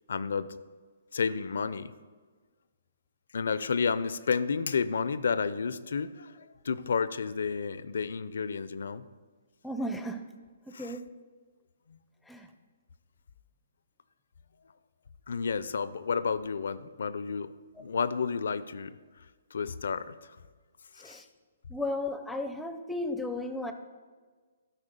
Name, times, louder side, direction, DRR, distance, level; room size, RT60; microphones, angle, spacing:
voice 1, 0.1-0.5 1.1-1.9 3.3-9.0 10.7-11.0 11.9-12.0 15.3-17.5 17.8-18.9 19.5-20.4 21.0-21.2, left 5 dB, 75° left, 15 dB, 0.5 m, -31 dB
voice 2, 9.6-10.2 10.8-11.0 12.3-12.5 21.0-21.2 21.7-23.7, left 1 dB, 5° left, 7 dB, 0.5 m, -34 dB
12.5 x 4.5 x 5.2 m, 1.5 s
hypercardioid pair, 155°, 0 cm